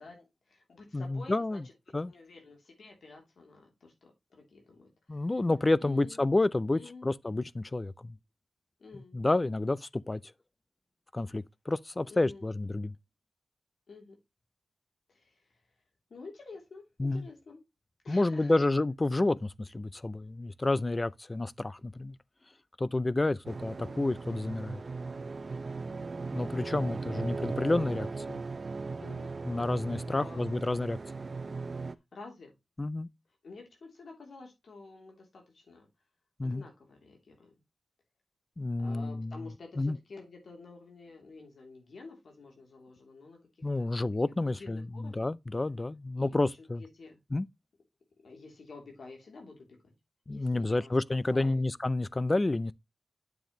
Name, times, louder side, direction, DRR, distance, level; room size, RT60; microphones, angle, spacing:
voice 1, 0.0-1.6 2.1-5.3 5.8-6.3 6.7-7.1 8.8-9.2 12.0-12.5 13.9-14.2 15.1-15.5 16.1-17.6 18.0-18.6 23.8-24.1 29.0-29.4 29.9-30.6 32.1-32.5 33.4-35.9 36.4-37.6 38.8-43.9 44.4-45.3 46.2-46.4 46.8-47.2 48.2-49.9 50.3-51.0 51.3-51.6, left 3 dB, 70° left, 3.2 m, -50 dB
voice 2, 0.9-1.6 1.9-2.1 5.1-8.2 9.1-10.3 11.1-12.9 17.0-17.3 18.1-22.2 22.8-24.8 26.3-28.4 29.4-31.0 32.8-33.1 36.4-36.6 38.6-39.4 39.8-40.0 43.6-46.8 47.3-47.5 50.3-52.7, left 2 dB, 25° left, 0.4 m, -30 dB
sound 1, 23.4-31.9, right 4 dB, 45° right, 0.6 m, -38 dB
9.1 x 7.0 x 3.1 m
wide cardioid pair, 95°, 0 cm